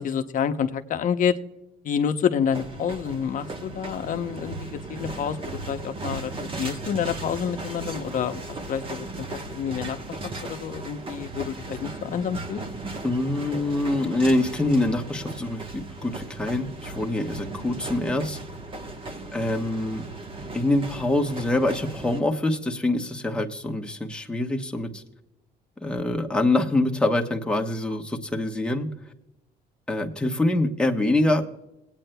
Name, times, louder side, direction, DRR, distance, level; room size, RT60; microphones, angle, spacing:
voice 1, 0.0-1.4 1.8-12.6, left 7 dB, 50° left, 9 dB, 0.7 m, -28 dB
sound 1, 2.5-22.2, right 2 dB, 30° right, 1.1 m, -37 dB
voice 2, 13.0-18.4 19.3-20.0 20.5-25.0 25.8-28.9 29.9-31.4, left 2 dB, 5° left, 2 dB, 1.1 m, -25 dB
21.0 x 8.9 x 2.2 m, 0.91 s
cardioid pair, 110°, 17 cm